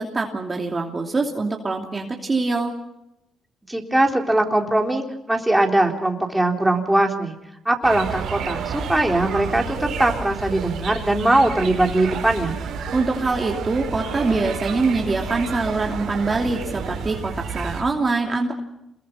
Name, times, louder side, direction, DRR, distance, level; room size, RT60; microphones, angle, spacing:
voice 1, 0.0-2.7 12.9-18.5, right 3 dB, 30° right, 1 dB, 2.8 m, -24 dB
voice 2, 3.7-7.3 7.7-12.5, right 1 dB, 10° right, 2 dB, 3.7 m, -21 dB
sound 1, 7.8-17.8, right 5 dB, 70° right, 4.7 m, -31 dB
28.0 x 22.0 x 5.7 m, 0.86 s
cardioid pair, 90°, 0 cm